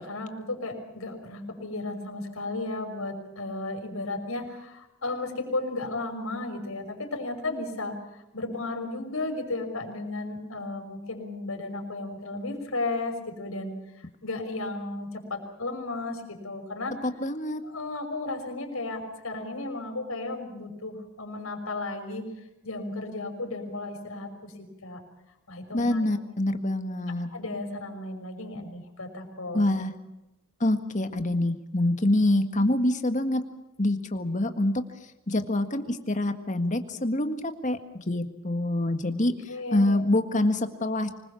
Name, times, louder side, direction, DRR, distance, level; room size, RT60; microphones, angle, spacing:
voice 1, 0.0-8.0 8.3-13.7 14.2-16.9 17.6-22.3 22.6-24.5 24.8-25.0 25.5-26.0 27.3-29.6 39.5-40.0, left 2 dB, 90° left, 4 dB, 5.7 m, -34 dB
voice 2, 17.2-17.6 25.7-27.3 29.5-29.9 30.6-33.4 33.8-34.8 35.3-37.8 38.1-39.3 39.7-41.1, left 1 dB, 35° left, 8 dB, 1.8 m, -25 dB
25.5 x 21.0 x 7.1 m, 0.92 s
head